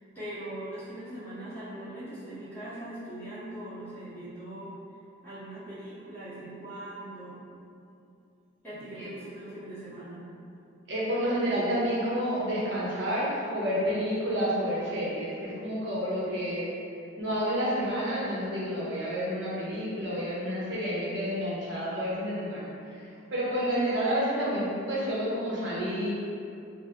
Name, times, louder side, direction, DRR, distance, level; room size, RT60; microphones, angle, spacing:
voice 1, 0.0-4.7 5.2-7.4 8.6-10.2, right 1 dB, 10° left, -14 dB, 1.2 m, -41 dB
voice 2, 10.9-16.7 17.2-23.0 23.3-26.1, equal, 60° right, -7 dB, 0.8 m, -29 dB
3.2 x 2.1 x 3.6 m, 2.6 s
head